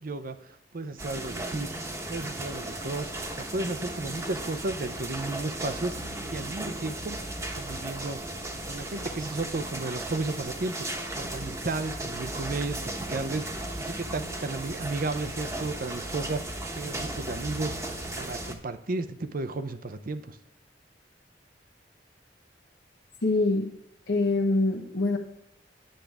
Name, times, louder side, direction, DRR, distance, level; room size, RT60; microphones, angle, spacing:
voice 1, 0.0-1.7 2.1-8.2 8.6-20.4, right 3 dB, 50° right, 10 dB, 0.6 m, -34 dB
sound 1, 1.0-18.5, right 1 dB, 15° right, 1.1 m, -36 dB
voice 2, 23.2-23.7 24.1-25.2, left 2 dB, 75° left, -3 dB, 1.2 m, -24 dB
10.0 x 7.4 x 3.4 m, 0.79 s
head